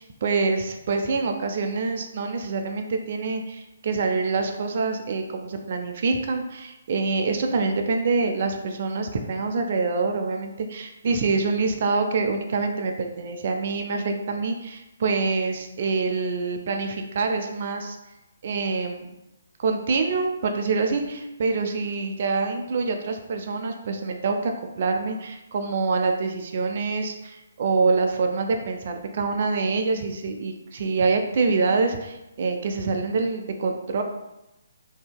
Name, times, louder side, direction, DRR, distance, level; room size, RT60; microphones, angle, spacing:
voice 1, 0.0-18.0 18.4-19.1 19.6-24.5 24.8-34.0, right 4 dB, 50° right, 4 dB, 0.3 m, -26 dB
2.7 x 2.7 x 2.2 m, 0.94 s
figure-of-eight pair, 145°, 0 cm